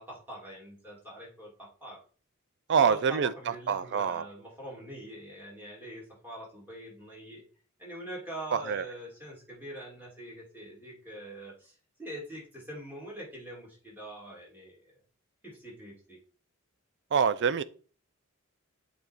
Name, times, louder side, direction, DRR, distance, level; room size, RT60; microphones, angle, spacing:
voice 1, 0.0-2.0 2.7-7.4 7.8-14.8 15.4-16.2, right 1 dB, 10° right, 2.8 m, -44 dB
voice 2, 2.7-3.3 3.7-4.2 8.5-8.8 17.1-17.6, right 6 dB, 55° right, 0.4 m, -25 dB
8.4 x 3.3 x 4.5 m
head